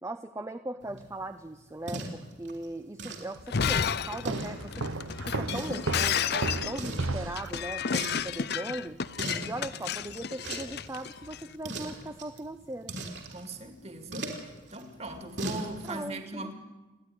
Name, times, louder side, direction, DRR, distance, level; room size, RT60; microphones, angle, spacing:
voice 1, 0.0-4.9 5.2-9.0 9.4-12.9 15.8-16.5, right 1 dB, 15° right, 9 dB, 0.6 m, -39 dB
sound 1, 0.8-16.0, right 2 dB, 55° right, 3.4 m, -42 dB
Shatter, 3.4-11.4, left 7 dB, 50° left, 0.6 m, -32 dB
Walk footsteps, 4.3-7.6, right 3 dB, 80° right, 0.9 m, -34 dB
voice 2, 9.2-9.5 13.3-14.3 14.7-16.5, right 2 dB, 30° right, 8 dB, 2.2 m, -40 dB
28.5 x 10.5 x 10.0 m, 1.2 s
head